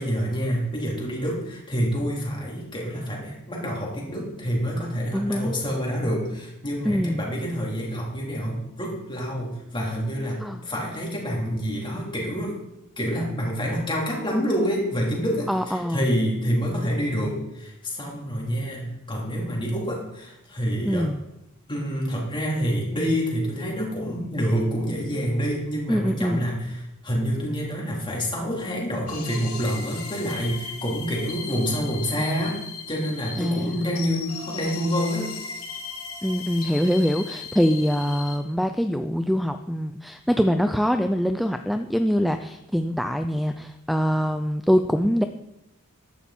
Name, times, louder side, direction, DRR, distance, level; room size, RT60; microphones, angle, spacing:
voice 1, 0.0-12.6 13.0-21.1 21.7-26.8 27.0-32.6 32.9-35.3, equal, 20° left, -3 dB, 3.8 m, -27 dB
voice 2, 5.1-5.5 6.8-7.2 10.4-10.6 15.5-16.1 20.8-21.2 25.9-26.4 33.4-34.0 36.2-45.2, equal, ahead, 8 dB, 0.4 m, -24 dB
sound 1, 29.1-38.4, left 6 dB, 75° left, 2.7 m, -37 dB
14.5 x 11.5 x 4.4 m, 0.87 s
head